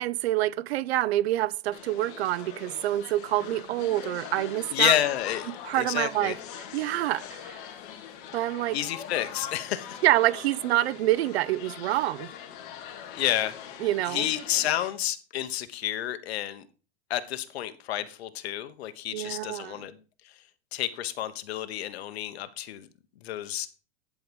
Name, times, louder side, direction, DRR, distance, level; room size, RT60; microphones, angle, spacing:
voice 1, 0.0-5.0 5.6-6.4 6.7-7.6 8.3-8.8 10.0-12.3 13.8-14.3 19.1-19.8, right 15 dB, 75° right, 0.6 m, -26 dB
sound 1, 1.7-14.9, left 9 dB, 40° left, 2.1 m, -42 dB
voice 2, 4.7-6.4 8.7-10.0 13.2-13.5 14.1-16.6 17.1-20.0 20.7-22.9 23.2-23.7, left 12 dB, 75° left, 1.2 m, -30 dB
10.5 x 4.7 x 5.2 m
supercardioid pair, 155°, 32 cm